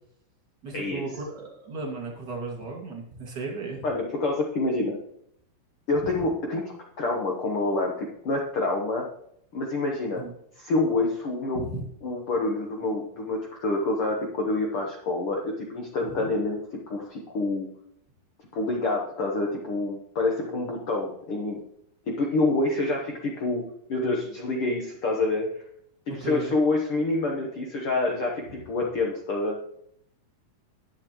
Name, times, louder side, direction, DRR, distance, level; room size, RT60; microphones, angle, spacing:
voice 1, 0.6-3.8 10.1-10.3 11.5-11.8 16.1-16.3 26.2-26.5, right 3 dB, 35° right, 0 dB, 2.2 m, -35 dB
voice 2, 3.8-5.0 5.9-9.1 9.5-10.2 10.6-11.7 12.0-17.7 18.5-21.6 22.1-25.6 26.1-29.6, left 2 dB, 70° left, 0 dB, 1.3 m, -27 dB
11.0 x 8.3 x 3.0 m, 0.71 s
omnidirectional pair, 3.9 m